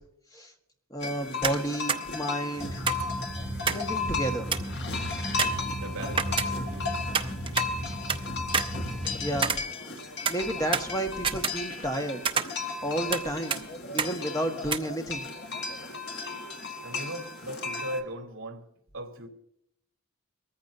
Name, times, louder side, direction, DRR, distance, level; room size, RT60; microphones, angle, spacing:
voice 1, 0.9-2.8 3.6-4.5 9.2-9.5 10.3-12.2 12.5-13.6 13.9-15.2, right 1 dB, 15° left, 1.4 m, -31 dB
sound 1, 1.0-18.0, left 4 dB, 50° left, 1.6 m, -35 dB
sound 2, 1.4-1.6 1.9-2.0 2.9-3.9 4.2-4.3 4.5-4.8 5.4-6.8 7.1-8.2 8.5-10.0 10.3-12.0 12.3-13.3 13.5-13.6 14.0-14.1 14.7-14.8, right 5 dB, 20° right, 0.6 m, -29 dB
sound 3, 2.6-9.5, equal, 5° right, 2.5 m, -36 dB
voice 2, 5.8-7.0 16.8-18.6 18.9-19.3, right 1 dB, 60° right, 2.9 m, -38 dB
23.0 x 14.5 x 2.7 m
head